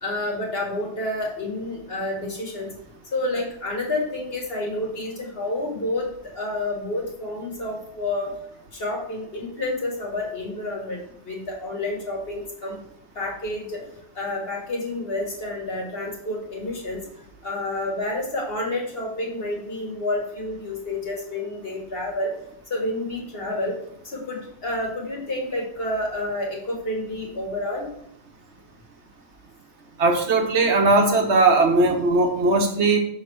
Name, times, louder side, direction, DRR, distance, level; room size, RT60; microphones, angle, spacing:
voice 1, 0.0-2.7 3.1-8.3 8.7-11.0 11.2-12.8 13.2-13.8 14.2-17.0 17.4-22.3 22.7-23.7 24.0-27.9, left 2 dB, 60° left, -2 dB, 1.9 m, -29 dB
voice 2, 30.0-33.0, right 3 dB, 75° right, 3 dB, 1.4 m, -19 dB
5.8 x 3.8 x 6.1 m, 0.75 s
omnidirectional pair, 1.2 m